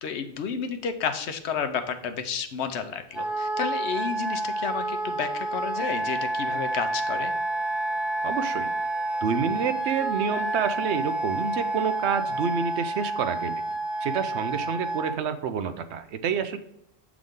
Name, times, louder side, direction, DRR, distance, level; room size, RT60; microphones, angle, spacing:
voice 1, 0.0-7.3, left 6 dB, 85° left, 8 dB, 1.0 m, -31 dB
Wind instrument woodwind instrument, 3.1-15.2, right 2 dB, ahead, 0.5 m, -29 dB
voice 2, 8.2-8.7 9.2-13.6 14.0-16.6, right 6 dB, 90° right, 9 dB, 0.9 m, -28 dB
7.7 x 3.6 x 3.6 m, 0.78 s
omnidirectional pair, 1.1 m